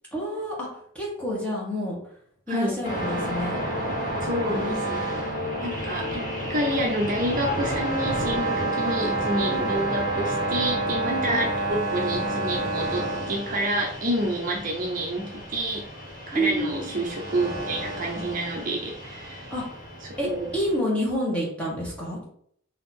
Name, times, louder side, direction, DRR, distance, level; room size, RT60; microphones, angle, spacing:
voice 1, 0.1-0.7 0.9-1.9 2.5-3.6 4.5-4.9 9.4-9.6 11.1-11.4 16.3-16.8 19.5-19.6 20.2-22.2, equal, 5° left, -4 dB, 1.3 m, -28 dB
voice 2, 2.5-2.8 4.2-5.0 5.6-6.2 6.5-15.8 16.3-19.5 20.0-20.5, right 1 dB, 40° right, -1 dB, 0.6 m, -28 dB
sound 1, 2.8-20.7, right 1 dB, 35° left, 1.6 m, -30 dB
4.0 x 2.8 x 4.2 m, 0.64 s
head